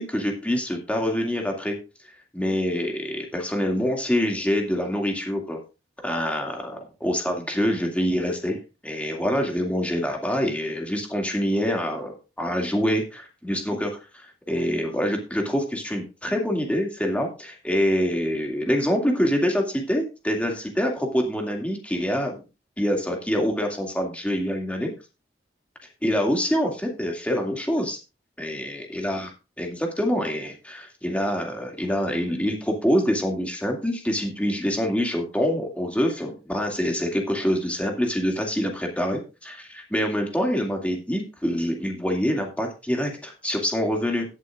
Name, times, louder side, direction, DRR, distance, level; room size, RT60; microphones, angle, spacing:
voice 1, 0.0-1.8 2.3-5.6 6.0-22.4 22.8-24.9 26.0-28.0 28.4-29.3 29.6-44.3, equal, 10° left, 2 dB, 2.3 m, -25 dB
18.0 x 8.2 x 2.5 m, 0.28 s
head